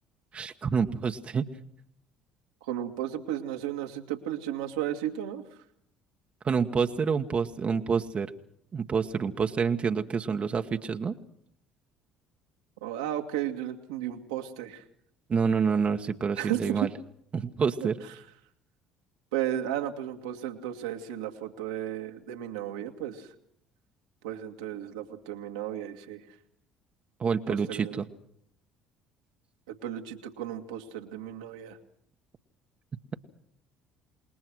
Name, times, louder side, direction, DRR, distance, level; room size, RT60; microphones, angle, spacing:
voice 1, 0.3-1.5 6.4-8.3 8.7-11.2 15.3-16.9 17.3-18.0 27.2-28.1, right 6 dB, 40° right, 5 dB, 1.3 m, -27 dB
voice 2, 2.6-5.4 12.8-14.8 16.4-16.8 19.3-23.3 24.2-26.2 27.5-28.0 29.7-31.8, right 11 dB, 80° right, 3 dB, 2.1 m, -34 dB
27.5 x 20.5 x 6.3 m, 0.70 s
hypercardioid pair, 60°, 3 cm